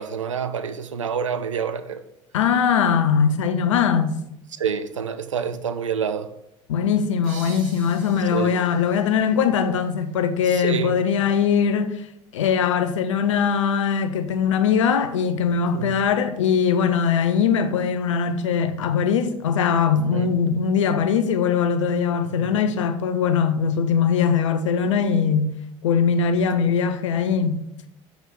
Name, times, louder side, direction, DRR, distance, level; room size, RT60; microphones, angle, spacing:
voice 1, 0.0-2.0 4.5-6.3 8.3-8.6 10.4-11.0 15.7-16.0 20.1-20.3 22.2-22.5, right 7 dB, 85° right, 0.4 m, -27 dB
voice 2, 2.3-4.2 6.7-12.1 12.3-25.6 25.8-27.6, left 6 dB, 80° left, 0.6 m, -21 dB
sound 1, 7.2-10.7, right 6 dB, 60° right, 1.2 m, -46 dB
7.0 x 4.0 x 4.7 m
figure-of-eight pair, 60°, 16 cm